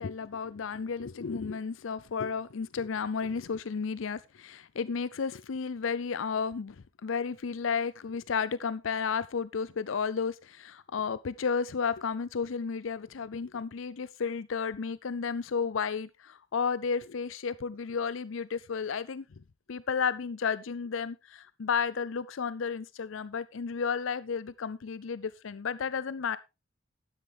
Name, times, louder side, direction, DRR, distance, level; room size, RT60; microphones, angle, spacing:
voice 1, 0.0-19.2 19.7-26.4, left 6 dB, 75° left, 0.5 m, -32 dB
12.0 x 9.9 x 3.4 m
head